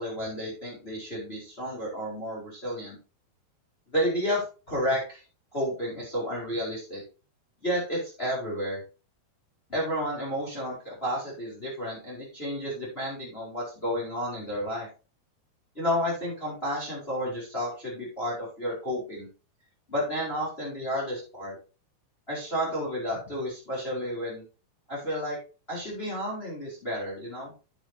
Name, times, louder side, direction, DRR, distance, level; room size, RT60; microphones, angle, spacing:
voice 1, 0.0-2.9 3.9-5.2 5.5-7.0 7.6-8.8 9.7-14.9 15.7-19.3 19.9-21.6 22.3-24.4 24.9-25.4 25.7-27.5, equal, 15° left, -5 dB, 4.6 m, -31 dB
9.7 x 9.1 x 2.9 m, 0.32 s
omnidirectional pair, 4.6 m